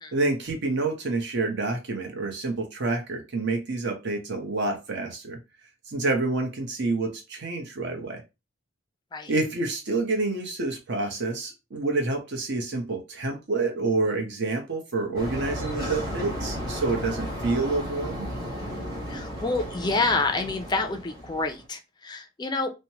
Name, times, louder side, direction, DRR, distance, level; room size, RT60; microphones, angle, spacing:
voice 1, 0.1-5.4 5.9-8.2 9.3-18.3, right 3 dB, 60° right, 3 dB, 0.8 m, -28 dB
sound 1, 15.2-21.6, equal, 20° right, 1.3 m, -34 dB
voice 2, 19.1-22.7, left 3 dB, 20° left, 6 dB, 0.4 m, -28 dB
3.1 x 2.1 x 2.8 m, 0.25 s
head